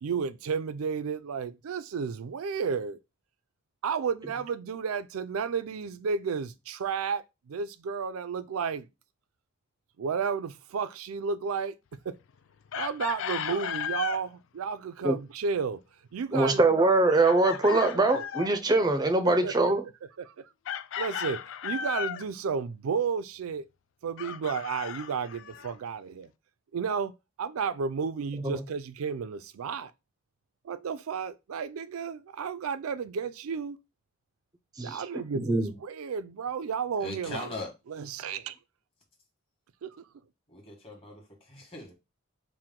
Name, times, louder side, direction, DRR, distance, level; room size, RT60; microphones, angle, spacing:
voice 1, 0.0-3.0 3.8-7.2 7.5-8.9 10.0-11.7 12.1-12.2 12.7-15.8 16.1-16.6 18.1-18.2 19.2-19.9 20.2-20.3 21.0-23.7 24.0-26.3 26.7-27.1 27.4-29.9 30.6-33.8 34.8-37.5 37.9-38.6 39.8-39.9, right 6 dB, 90° right, 0.4 m, -32 dB
Chicken rooster, 12.7-14.2 17.2-18.5 20.6-22.3 24.2-25.7, left 8 dB, 65° left, 0.3 m, -35 dB
voice 2, 16.3-19.8 28.4-28.6 34.8-35.7, right 2 dB, 20° right, 0.4 m, -23 dB
voice 3, 37.0-37.7 40.5-41.9, left 2 dB, 25° left, 1.3 m, -40 dB
4.6 x 2.1 x 3.6 m
head